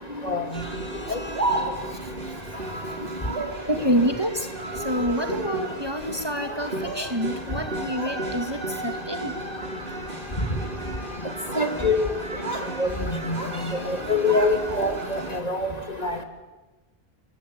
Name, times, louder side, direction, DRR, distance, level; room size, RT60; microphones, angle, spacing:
voice 1, 0.0-0.6 0.9-3.1 3.7-4.5 4.8-9.3 13.4-13.5 15.4-15.7, equal, 25° right, 5 dB, 2.2 m, -29 dB
sound 1, 0.5-15.4, right 2 dB, 55° right, 3.4 m, -35 dB
Speech, 0.9-2.0 3.2-3.6 4.6-5.7 6.4-7.2 7.5-8.2 8.6-9.0 9.6-10.0 11.1-11.8 12.1-12.7 13.0-13.6 13.9-15.2, right 2 dB, 80° right, 4.9 m, -33 dB
voice 2, 11.6-12.1 12.8-15.2 15.4-15.7 16.0-16.2, left 3 dB, 40° left, 5 dB, 3.0 m, -24 dB
29.5 x 21.5 x 8.9 m, 1.2 s
omnidirectional pair, 1.1 m